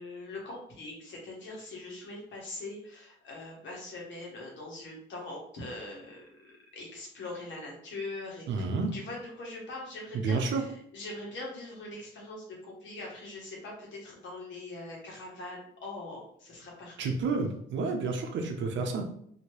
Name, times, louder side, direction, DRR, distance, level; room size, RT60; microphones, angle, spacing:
voice 1, 0.0-17.1, left 2 dB, 70° left, -2 dB, 1.3 m, -42 dB
voice 2, 8.5-9.0 10.1-10.7 17.0-19.0, right 4 dB, 70° right, 4 dB, 0.6 m, -30 dB
2.8 x 2.8 x 3.0 m, 0.68 s
cardioid pair, 90°, 20 cm